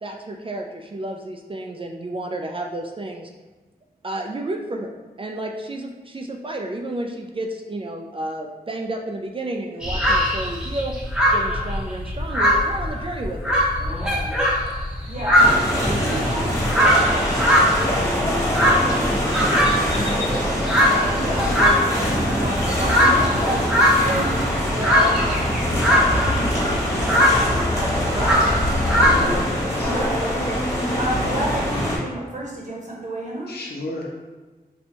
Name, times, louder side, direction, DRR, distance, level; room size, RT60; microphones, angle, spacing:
voice 1, 0.0-3.3 4.0-4.9 5.2-10.9 11.3-13.6 15.0-15.1, right 1 dB, 35° right, 2 dB, 0.3 m, -31 dB
sound 1, 9.8-29.2, equal, 5° right, 0.8 m, -20 dB
voice 2, 14.6-29.1 29.8-33.6, right 1 dB, 50° right, -3 dB, 1.0 m, -32 dB
sound 2, 15.4-32.0, equal, 15° left, 1.3 m, -23 dB
voice 3, 29.1-29.9 33.5-34.2, left 2 dB, 90° left, -1 dB, 0.6 m, -33 dB
4.3 x 2.2 x 2.8 m, 1.2 s
cardioid pair, 60°, 16 cm